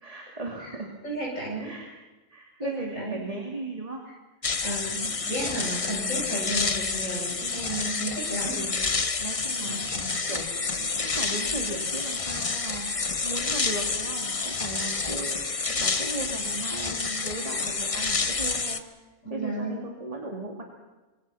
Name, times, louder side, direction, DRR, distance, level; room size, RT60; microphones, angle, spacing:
voice 1, 0.0-0.9 1.6-1.9 2.3-4.1 4.6-5.0 8.5-8.9 9.2-18.8 19.3-20.6, right 2 dB, 25° right, 1 dB, 2.6 m, -37 dB
voice 2, 1.0-1.7 2.6-3.2 4.6-8.6 9.6-10.2 19.2-19.8, right 1 dB, 65° left, -3 dB, 8.0 m, -33 dB
sound 1, 4.4-18.8, left 4 dB, 30° left, 0.9 m, -29 dB
26.0 x 23.5 x 5.7 m, 1.2 s
omnidirectional pair, 1.4 m